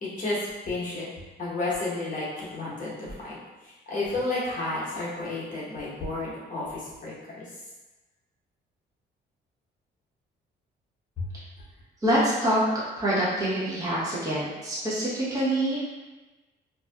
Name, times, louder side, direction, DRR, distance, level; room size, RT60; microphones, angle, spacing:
voice 1, 0.0-0.4 0.6-1.1 1.4-3.4 3.9-7.5 11.2-11.3, left 2 dB, 40° left, -7 dB, 0.9 m, -31 dB
voice 2, 12.0-12.6 13.0-15.8, right 1 dB, 15° right, -9 dB, 0.8 m, -25 dB
2.6 x 2.3 x 2.3 m, 1.2 s
cardioid pair, 90°, 20 cm